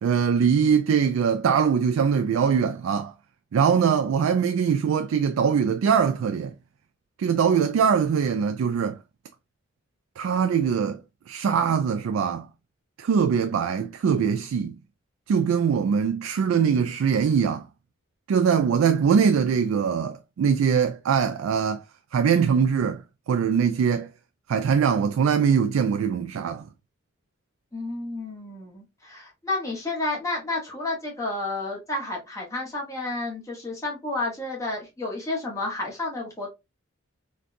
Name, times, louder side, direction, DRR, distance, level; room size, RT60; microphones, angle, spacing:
voice 1, 0.0-3.1 3.5-6.5 7.2-9.0 10.2-11.0 11.3-12.5 13.0-14.8 15.3-17.7 18.3-21.8 22.1-23.0 23.3-24.1 24.5-26.7, right 6 dB, 80° right, 0.3 m, -22 dB
voice 2, 27.7-36.5, left 2 dB, 15° left, 1.1 m, -31 dB
3.8 x 2.3 x 2.5 m
head